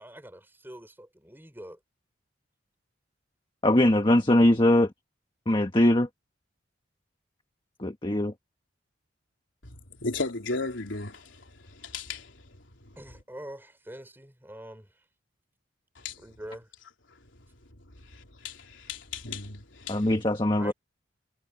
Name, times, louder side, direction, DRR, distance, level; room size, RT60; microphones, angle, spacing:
voice 1, 0.0-1.8 13.0-14.9 16.2-16.7 20.6-20.7, right 1 dB, 10° right, 4.3 m, -44 dB
voice 2, 3.6-4.9 5.5-6.1 7.8-8.3 19.9-20.7, left 1 dB, 25° left, 1.4 m, -21 dB
voice 3, 9.6-12.6 15.9-16.2 18.0-20.1, left 3 dB, 80° left, 3.5 m, -36 dB
head